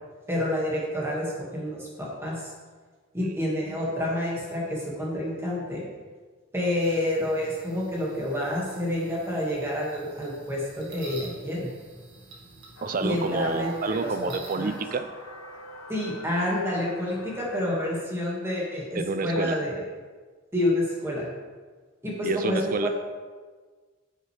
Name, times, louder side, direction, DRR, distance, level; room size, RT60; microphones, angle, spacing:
voice 1, 0.3-2.5 3.1-5.8 6.5-11.7 13.0-14.1 14.5-14.7 15.9-19.7 20.5-21.3 22.0-22.9, left 1 dB, 15° right, -5 dB, 2.0 m, -28 dB
sound 1, 6.8-14.8, right 2 dB, 65° right, 2.0 m, -48 dB
sound 2, 12.8-18.0, left 1 dB, 80° left, 0.9 m, -44 dB
voice 2, 12.8-15.1 18.9-19.6 22.2-22.9, right 4 dB, 45° right, 10 dB, 0.4 m, -29 dB
9.1 x 6.5 x 3.4 m, 1.4 s
head